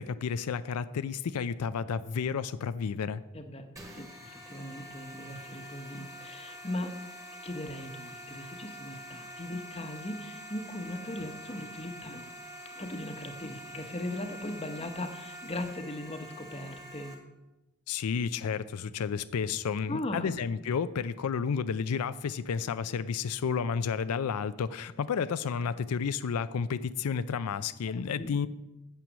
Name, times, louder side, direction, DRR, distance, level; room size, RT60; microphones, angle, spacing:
voice 1, 0.0-3.2 17.9-28.5, left 6 dB, 90° left, 14 dB, 0.4 m, -31 dB
voice 2, 3.3-7.0 7.4-12.2 12.7-17.1 19.9-20.4 27.8-27.9 28.2-28.5, left 1 dB, 25° left, 7 dB, 0.9 m, -39 dB
sound 1, 3.8-17.1, equal, 15° right, 1.5 m, -46 dB
8.9 x 7.5 x 6.2 m, 0.98 s
head